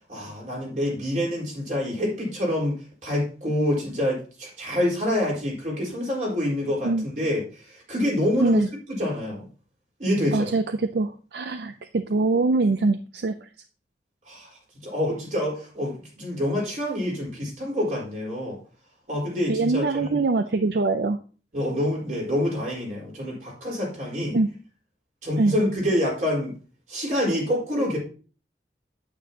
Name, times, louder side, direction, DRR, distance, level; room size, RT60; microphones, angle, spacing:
voice 1, 0.1-2.8 3.0-8.6 9.0-9.5 10.0-10.5 14.3-18.6 19.1-20.2 21.5-24.4 25.2-26.5 26.9-28.0, left 1 dB, 45° right, -3 dB, 4.6 m, -27 dB
voice 2, 10.3-13.5 19.5-21.2 24.3-24.5 25.4-25.5, right 3 dB, 65° right, 9 dB, 0.5 m, -23 dB
9.2 x 8.7 x 2.9 m, 0.37 s
head